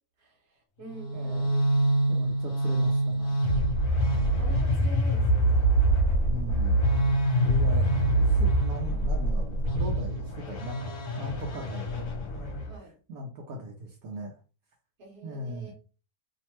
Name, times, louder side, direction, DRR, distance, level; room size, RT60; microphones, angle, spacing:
voice 1, 0.2-1.7 2.8-2.9 3.2-3.3 4.2-6.0 7.3-7.8 12.0-12.1 12.6-13.0 15.0-15.8, right 2 dB, 50° right, 0 dB, 1.2 m, -47 dB
sound 1, 0.9-12.7, right 1 dB, 70° left, 1.1 m, -25 dB
voice 2, 1.1-1.6 2.1-3.4 6.3-6.8 7.4-11.9 12.4-14.4 15.2-15.7, equal, 75° right, 1 dB, 1.1 m, -39 dB
3.0 x 2.1 x 2.9 m, 0.34 s
omnidirectional pair, 1.6 m